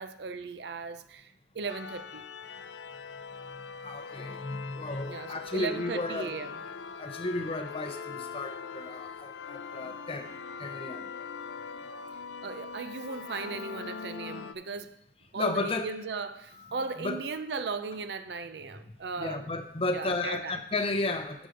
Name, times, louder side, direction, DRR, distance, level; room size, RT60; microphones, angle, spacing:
voice 1, 0.0-2.2 5.1-6.6 12.4-15.0 15.3-19.5 19.9-20.6, right 4 dB, 70° right, 0.6 m, -37 dB
sound 1, 1.7-14.5, left 6 dB, 85° left, 0.4 m, -42 dB
voice 2, 3.8-6.5 7.0-10.3 10.6-11.0 15.3-16.0 16.5-17.3 19.2-21.5, left 2 dB, 35° left, 0.7 m, -33 dB
6.1 x 5.3 x 6.4 m
head